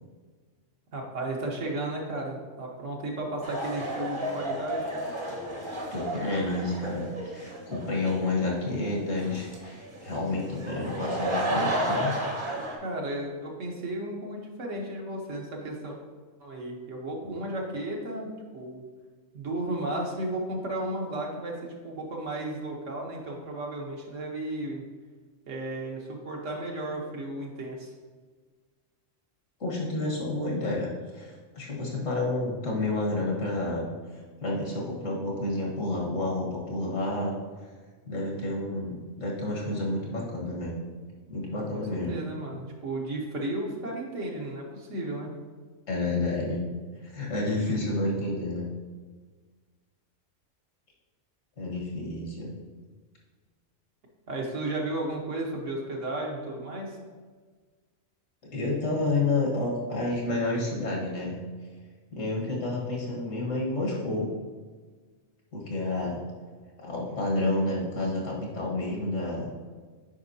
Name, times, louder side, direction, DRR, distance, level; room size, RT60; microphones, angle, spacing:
voice 1, 0.9-4.9 12.8-16.0 16.4-18.8 19.3-24.8 25.5-27.9 41.5-45.3 54.3-57.0, right 1 dB, 70° right, -1 dB, 1.5 m, -34 dB
sound 1, 3.4-12.8, right 1 dB, 25° right, 0.8 m, -33 dB
voice 2, 5.9-12.1 17.2-17.3 29.6-33.9 34.4-37.3 38.1-40.7 41.3-42.2 45.9-46.6 47.0-48.7 51.6-52.5 58.5-61.4 62.1-64.3 65.5-66.2 66.8-69.5, left 2 dB, 80° left, -3 dB, 1.9 m, -30 dB
8.3 x 5.3 x 2.8 m, 1.5 s
omnidirectional pair, 1.3 m